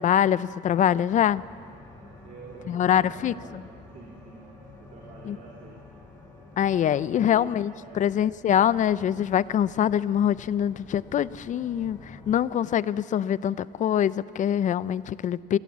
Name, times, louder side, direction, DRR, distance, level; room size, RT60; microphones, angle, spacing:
voice 1, 0.0-1.4 2.7-3.6 5.3-5.4 6.6-15.6, left 10 dB, 50° left, 18 dB, 0.5 m, -24 dB
sound 1, 1.1-12.4, left 2 dB, 15° left, 6.0 m, -49 dB
voice 2, 2.2-3.6 3.9-4.5 4.8-5.8 7.1-7.5 7.8-8.1, right 4 dB, 50° right, -3 dB, 3.9 m, -46 dB
25.0 x 16.5 x 7.3 m, 2.3 s
cardioid pair, 110°, 17 cm